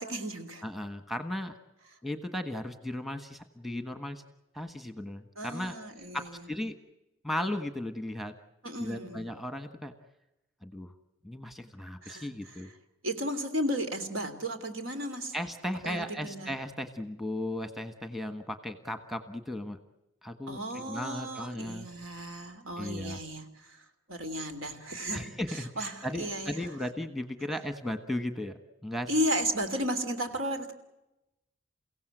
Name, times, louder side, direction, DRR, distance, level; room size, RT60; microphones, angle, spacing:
voice 1, 0.0-0.6 5.4-6.4 8.6-9.3 12.0-12.3 13.0-15.3 15.8-16.5 20.5-23.8 24.1-26.5 29.1-30.7, equal, 80° right, 7 dB, 3.2 m, -34 dB
voice 2, 0.6-1.5 2.0-4.2 4.5-5.7 6.1-6.7 7.2-8.3 8.8-9.9 10.6-10.9 11.2-12.7 15.3-19.8 20.2-21.9 22.8-23.2 25.1-29.1, left 1 dB, ahead, 8 dB, 1.4 m, -36 dB
29.5 x 17.0 x 7.9 m, 0.96 s
head